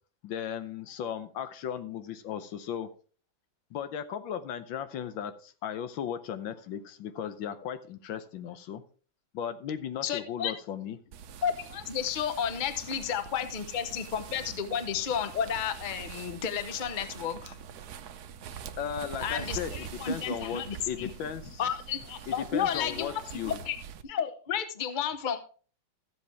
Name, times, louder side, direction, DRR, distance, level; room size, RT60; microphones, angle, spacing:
voice 1, 0.2-2.9 3.7-8.8 9.3-11.0 18.8-21.6 22.3-23.6, left 9 dB, 90° left, 11 dB, 1.7 m, -36 dB
voice 2, 10.0-10.5 11.4-17.6 19.2-21.1 21.6-23.2 23.5-23.8 24.0-25.4, left 8 dB, 40° left, 10 dB, 0.7 m, -32 dB
sound 1, 11.1-24.0, right 8 dB, 65° right, 1.1 m, -44 dB
13.5 x 7.7 x 3.5 m, 0.40 s
omnidirectional pair, 2.1 m